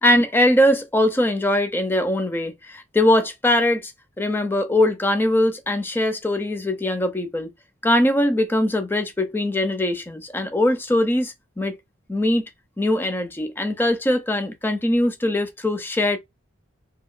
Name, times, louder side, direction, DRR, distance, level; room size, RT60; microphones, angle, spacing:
voice 1, 0.0-3.9 4.2-7.5 7.8-11.7 12.1-12.5 12.8-16.2, left 1 dB, 10° left, 0.4 m, -21 dB
2.8 x 2.5 x 2.4 m
head